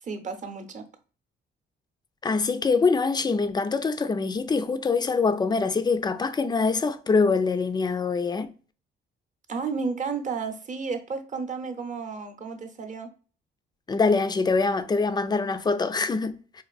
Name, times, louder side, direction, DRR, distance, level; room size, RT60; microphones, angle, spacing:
voice 1, 0.0-0.9 9.5-13.1, right 5 dB, 40° right, 0.7 m, -32 dB
voice 2, 2.2-8.5 13.9-16.6, left 4 dB, 20° left, 0.3 m, -24 dB
4.2 x 2.6 x 2.3 m
cardioid pair, 90°, 20 cm